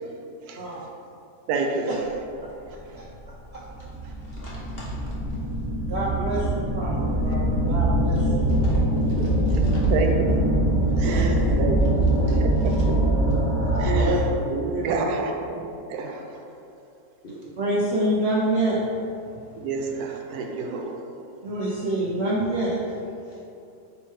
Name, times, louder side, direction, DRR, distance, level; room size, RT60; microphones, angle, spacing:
voice 1, 0.6-0.9 1.9-2.0 2.4-2.5 2.9-3.1 3.5-3.6 5.9-8.3 11.0-11.2 13.8-14.2 14.7-15.2 17.6-19.0 21.4-22.8, right 1 dB, 65° right, -6 dB, 0.6 m, -27 dB
voice 2, 1.5-2.0 9.2-9.4 9.9-10.3 11.0-12.7 13.8-14.2 14.5-15.6 15.9-16.3 19.6-21.1, right 4 dB, 80° right, 2 dB, 1.1 m, -28 dB
sound 1, 2.8-2.9 3.6-14.3, right 1 dB, 10° right, 1.1 m, -23 dB
voice 3, 4.3-5.0 8.5-8.8 9.1-9.9 11.0-11.5 12.6-12.8 17.2-17.4 23.3-23.4, left 1 dB, 55° left, -7 dB, 0.7 m, -46 dB
3.9 x 3.0 x 4.4 m, 2.6 s
omnidirectional pair, 1.6 m